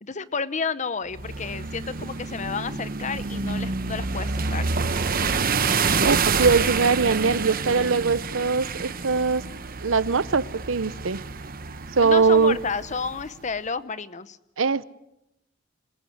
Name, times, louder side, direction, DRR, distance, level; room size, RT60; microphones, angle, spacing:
voice 1, 0.0-4.7 12.0-14.4, left 5 dB, 40° left, 15 dB, 0.9 m, -31 dB
sound 1, 1.1-13.3, right 4 dB, 45° right, 1.0 m, -28 dB
voice 2, 6.0-9.4 9.8-11.2 12.0-12.6 14.6-14.8, right 4 dB, 80° right, 17 dB, 0.7 m, -21 dB
27.0 x 16.0 x 7.9 m, 0.88 s
head